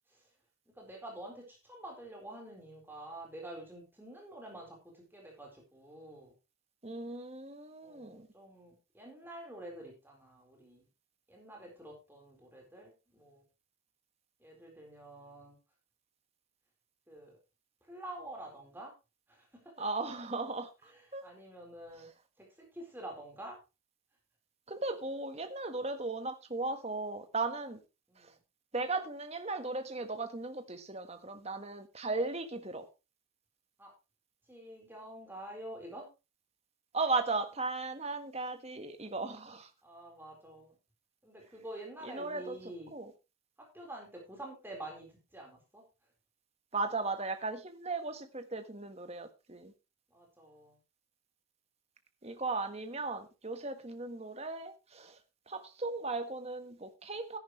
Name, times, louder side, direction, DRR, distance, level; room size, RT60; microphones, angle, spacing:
voice 1, 0.8-6.3 7.8-10.8 11.3-13.4 14.4-15.6 17.1-17.4 17.9-18.9 19.3-19.7 20.8-22.1 22.4-23.6 28.1-28.3 33.8-33.9 34.5-36.1 39.8-40.7 41.2-42.9 43.6-45.1 45.3-45.8 50.1-50.8, right 1 dB, 10° right, 0 dB, 4.1 m, -48 dB
voice 2, 6.8-8.3 19.8-21.3 24.7-27.8 28.2-28.3 28.7-32.9 36.9-39.7 42.0-42.6 42.9-43.1 46.7-49.7 52.2-55.2 55.5-57.4, right 3 dB, 30° right, 8 dB, 1.4 m, -37 dB
14.0 x 10.5 x 3.2 m, 0.28 s
head